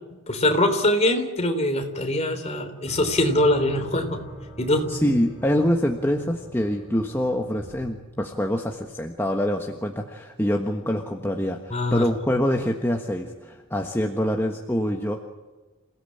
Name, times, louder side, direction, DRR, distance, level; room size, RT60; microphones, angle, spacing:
voice 1, 0.3-4.3 4.6-4.9 11.7-12.1, left 1 dB, 30° left, 6 dB, 3.3 m, -23 dB
sound 1, 2.9-8.8, right 1 dB, 45° left, 7.7 m, -43 dB
voice 2, 4.9-15.2, equal, 10° left, 2 dB, 1.4 m, -25 dB
28.5 x 17.5 x 8.7 m, 1.2 s
head